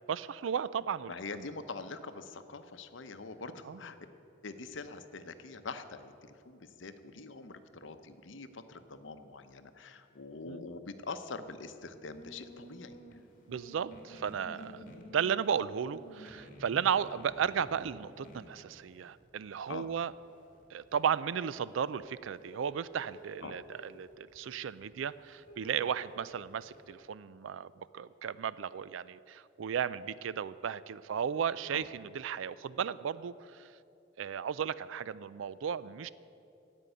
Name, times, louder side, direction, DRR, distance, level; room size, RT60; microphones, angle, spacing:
voice 1, 0.1-1.5 3.7-3.8 10.4-10.6 13.5-14.8 15.1-20.1 20.7-33.7 34.2-36.1, right 8 dB, 80° right, 17 dB, 0.4 m, -35 dB
voice 2, 1.1-4.0 4.4-13.0 14.5-14.9 19.7-19.9 23.4-23.6 31.7-31.8, left 3 dB, 75° left, 9 dB, 0.8 m, -44 dB
sound 1, 12.1-26.9, equal, 45° left, 2.1 m, -53 dB
16.0 x 5.4 x 10.0 m, 2.7 s
head